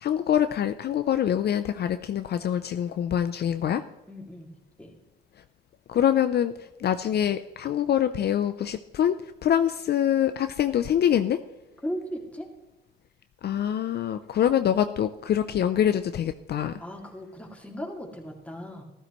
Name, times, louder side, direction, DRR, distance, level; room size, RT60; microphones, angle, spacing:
voice 1, 0.0-3.8 5.9-6.5 6.8-11.4 13.4-16.7, left 10 dB, 55° left, 10 dB, 0.5 m, -25 dB
voice 2, 4.1-4.5 4.8-4.9 11.8-12.5 16.8-18.8, equal, 5° left, 1 dB, 2.4 m, -37 dB
14.5 x 13.0 x 3.1 m, 1.1 s
cardioid pair, 90°, 20 cm